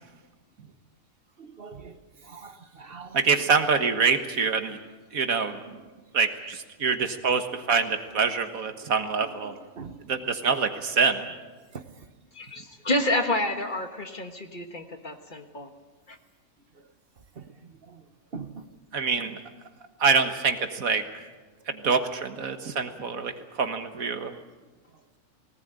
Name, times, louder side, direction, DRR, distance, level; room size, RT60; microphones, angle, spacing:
voice 1, 1.4-2.0 2.2-3.2 9.8-10.0 11.2-11.4 11.7-12.1 17.4-18.0 18.3-18.6 19.3-19.4 21.8-21.9 24.3-24.4, right 5 dB, 45° right, 9 dB, 1.2 m, -42 dB
voice 2, 3.1-4.8 5.1-5.6 6.1-9.5 10.1-11.3 18.9-19.4 20.0-21.0 21.7-24.3, right 5 dB, 85° right, 7 dB, 1.9 m, -25 dB
voice 3, 12.4-15.7, left 1 dB, 35° left, 6 dB, 1.6 m, -29 dB
19.5 x 18.5 x 9.0 m, 1.3 s
omnidirectional pair, 1.4 m